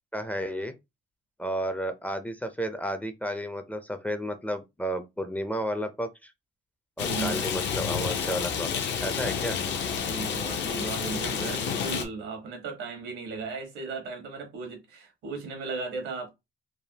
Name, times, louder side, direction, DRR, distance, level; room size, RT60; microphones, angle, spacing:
voice 1, 0.1-0.8 1.4-6.3 7.0-9.6, equal, 5° left, 0.4 m, -32 dB
Rain, 7.0-12.1, left 7 dB, 65° left, 0.6 m, -30 dB
voice 2, 7.0-7.5 9.5-16.3, right 4 dB, 90° right, 1.2 m, -36 dB
3.4 x 2.1 x 2.7 m
cardioid pair, 90°, 20 cm